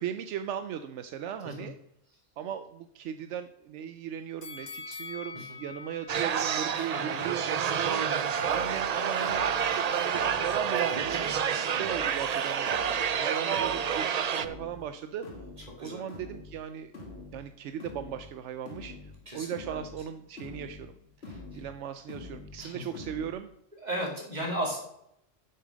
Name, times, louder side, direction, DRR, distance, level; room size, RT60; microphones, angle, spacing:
voice 1, 0.0-1.7 2.4-12.7 13.0-15.3 15.8-16.9 17.3-19.0 19.3-20.9 21.5-23.5, right 9 dB, 80° right, 10 dB, 0.9 m, -37 dB
sound 1, 4.4-7.5 7.9-8.0, left 4 dB, 40° left, 0.9 m, -45 dB
sound 2, 6.1-14.5, right 7 dB, 55° right, 0.5 m, -29 dB
voice 2, 6.7-7.2 15.8-16.0 19.3-19.9 21.3-21.6 22.6-23.0 23.8-24.8, equal, 35° right, -1 dB, 2.6 m, -36 dB
sound 3, 8.4-23.3, left 2 dB, 60° left, 1.8 m, -47 dB
7.5 x 6.8 x 6.3 m, 0.77 s
omnidirectional pair, 1.2 m